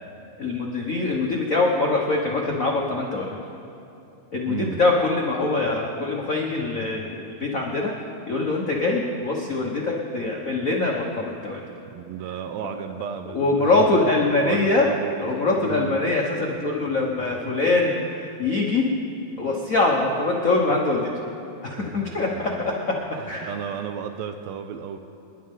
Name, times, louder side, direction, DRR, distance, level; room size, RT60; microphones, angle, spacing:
voice 1, 0.4-3.3 4.3-7.9 8.3-11.6 13.3-14.9 15.2-18.8 19.4-21.1 21.6-22.7 23.3-23.7, left 3 dB, 85° left, -2 dB, 0.7 m, -23 dB
voice 2, 4.5-4.8 11.9-13.9 14.2-15.3 15.6-16.0 21.8-22.7 23.2-25.0, right 8 dB, 80° right, 7 dB, 1.8 m, -34 dB
26.5 x 11.0 x 3.7 m, 2.8 s
omnidirectional pair, 3.3 m